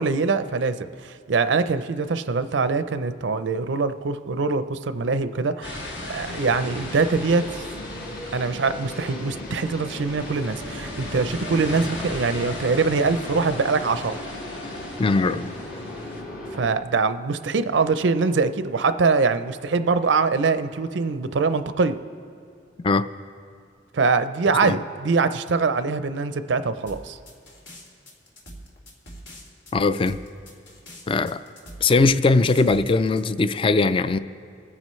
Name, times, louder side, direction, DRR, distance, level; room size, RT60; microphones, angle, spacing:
voice 1, 0.0-7.6 8.3-14.2 16.5-22.0 23.9-27.2, right 4 dB, 80° right, 11 dB, 0.5 m, -23 dB
sound 1, 5.6-16.2, left 2 dB, 70° left, 1.7 m, -38 dB
sound 2, 6.2-16.7, left 1 dB, 55° left, 1.4 m, -37 dB
voice 2, 15.0-15.5 22.8-23.1 24.6-24.8 29.7-30.2 31.1-31.4 31.8-34.2, left 3 dB, 30° left, 13 dB, 0.3 m, -20 dB
sound 3, 26.9-33.2, equal, 85° left, 2.4 m, -43 dB
26.5 x 9.8 x 3.1 m, 2.3 s
head